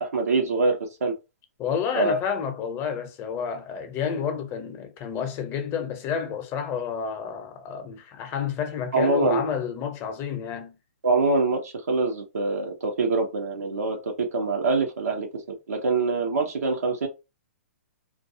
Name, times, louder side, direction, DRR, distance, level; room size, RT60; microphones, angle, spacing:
voice 1, 0.0-1.1 1.9-2.2 8.9-9.4 11.0-15.4 15.7-17.1, right 3 dB, 85° right, 0.8 m, -24 dB
voice 2, 1.6-10.8, left 7 dB, 30° left, 0.7 m, -30 dB
2.4 x 2.3 x 2.7 m
hypercardioid pair, 135°, 8 cm